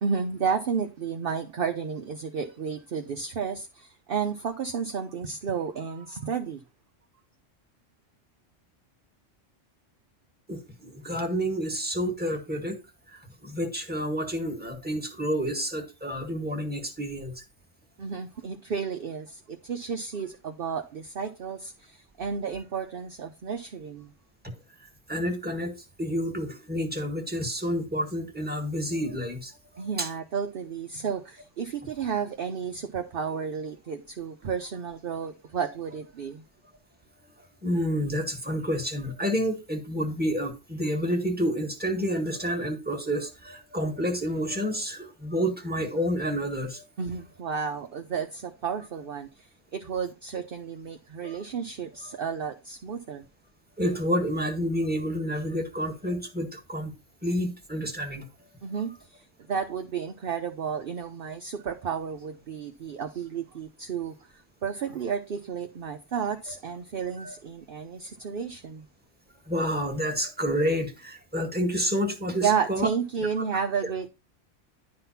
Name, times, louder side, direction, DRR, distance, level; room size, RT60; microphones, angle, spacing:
voice 1, 0.0-6.6 18.0-24.1 29.8-36.4 47.0-53.3 58.6-68.9 72.4-74.1, right 6 dB, 55° right, 0.8 m, -32 dB
voice 2, 10.5-12.8 13.4-17.3 25.1-25.7 26.0-30.1 37.6-46.8 51.2-51.3 53.8-56.9 57.2-58.2 67.2-67.3 69.5-72.9 73.4-73.5, equal, 10° right, 1.7 m, -29 dB
10.5 x 3.8 x 5.7 m
omnidirectional pair, 1.3 m